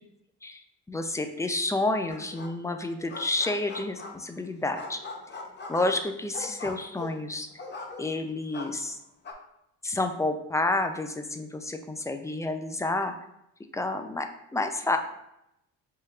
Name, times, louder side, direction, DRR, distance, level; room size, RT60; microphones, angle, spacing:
voice 1, 0.9-5.0 5.7-7.5 8.0-9.0 9.8-13.1 13.7-15.0, left 2 dB, 10° left, 6 dB, 0.4 m, -29 dB
sound 1, 2.1-2.7 3.0-4.4 4.7-8.3 8.5-9.3, left 3 dB, 35° left, 0.8 m, -41 dB
5.2 x 3.8 x 2.4 m, 0.81 s
cardioid pair, 95°, 32 cm